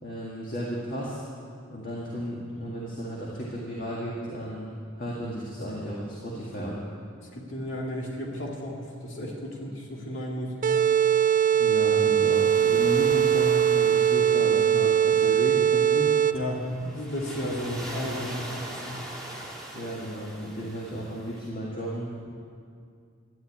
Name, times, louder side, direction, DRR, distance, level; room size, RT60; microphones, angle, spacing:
voice 1, 0.0-1.2 1.7-4.7 5.0-6.8 11.6-16.1 19.7-22.3, equal, 40° left, -5 dB, 2.0 m, -34 dB
voice 2, 7.3-10.9 16.3-19.1, equal, 60° left, -2 dB, 2.4 m, -33 dB
sound 1, 10.6-16.6, right 9 dB, 40° right, 0.3 m, -21 dB
sound 2, 10.8-21.5, right 1 dB, 5° left, 1.9 m, -43 dB
13.5 x 10.5 x 8.6 m, 2.3 s
head